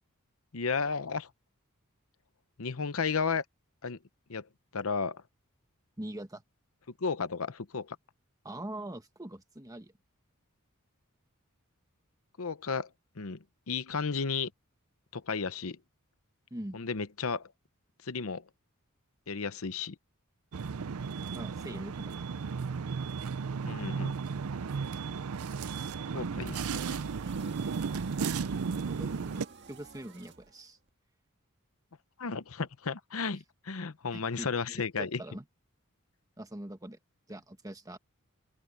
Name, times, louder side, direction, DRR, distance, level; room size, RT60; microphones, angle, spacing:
voice 1, 0.5-1.3 2.6-3.4 3.8-4.0 4.3-4.5 4.7-5.2 7.0-8.0 12.4-12.9 13.2-13.4 13.7-14.5 15.1-15.8 16.7-17.5 18.0-18.4 19.3-20.0 23.6-24.2 26.1-27.0 32.2-35.2, left 5 dB, 70° left, 0.9 m, -33 dB
voice 2, 6.0-6.4 8.4-9.9 16.5-16.9 21.3-22.3 27.4-27.8 28.7-30.8 34.1-35.4 36.4-37.0 37.3-38.0, right 1 dB, 15° right, 1.5 m, -43 dB
sound 1, 20.5-29.4, right 5 dB, 80° right, 0.5 m, -34 dB
sound 2, 26.7-30.9, right 4 dB, 55° right, 1.7 m, -52 dB
open air
head